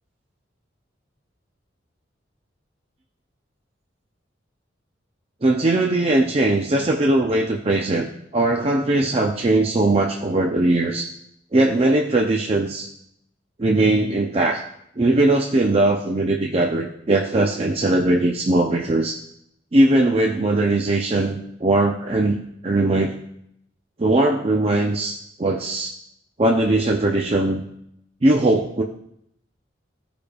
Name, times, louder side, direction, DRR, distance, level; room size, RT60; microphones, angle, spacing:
voice 1, 5.4-8.1 8.3-11.1 11.5-12.9 13.6-14.6 15.0-19.2 19.7-23.2 24.0-25.9 26.4-27.6 28.2-28.8, right 2 dB, 30° right, 1 dB, 0.5 m, -20 dB
14.5 x 5.0 x 2.3 m, 0.74 s
head